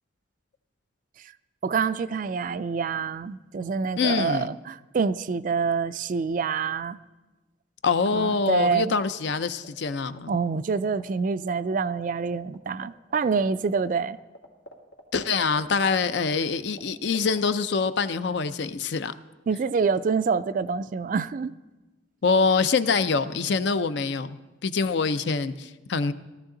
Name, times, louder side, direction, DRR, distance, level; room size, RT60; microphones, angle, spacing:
voice 1, 1.6-7.0 8.1-9.0 10.3-14.2 19.5-21.5, right 5 dB, 45° right, 14 dB, 0.3 m, -26 dB
voice 2, 4.0-4.5 7.8-10.3 15.1-19.1 22.2-26.1, left 4 dB, 60° left, 12 dB, 0.5 m, -25 dB
sound 1, 9.6-10.2 10.5-12.5 12.8-12.9 13.1-16.8 17.1-17.4, equal, 85° left, 1.9 m, -45 dB
16.5 x 13.0 x 3.8 m, 1.1 s
head